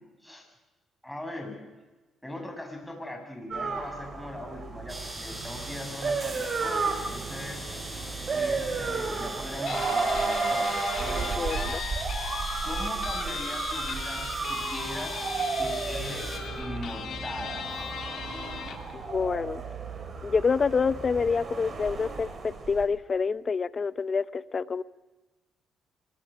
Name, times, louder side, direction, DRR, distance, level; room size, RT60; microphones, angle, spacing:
voice 1, 1.0-1.6 2.2-7.6 7.9-8.0 8.3-11.4 12.6-15.3 15.6-16.3 16.6-17.5, left 1 dB, 5° left, 2 dB, 6.9 m, -40 dB
sound 1, 3.5-22.9, right 4 dB, 45° right, 3.9 m, -33 dB
sound 2, 4.9-16.4, right 1 dB, 15° right, 4.8 m, -40 dB
Guitar, 9.7-18.9, left 7 dB, 65° left, 2.8 m, -38 dB
voice 2, 11.2-11.8 18.9-19.6 20.2-24.8, left 5 dB, 40° left, 16 dB, 0.8 m, -27 dB
25.5 x 21.0 x 6.3 m, 1.2 s
cardioid pair, 90°, 0 cm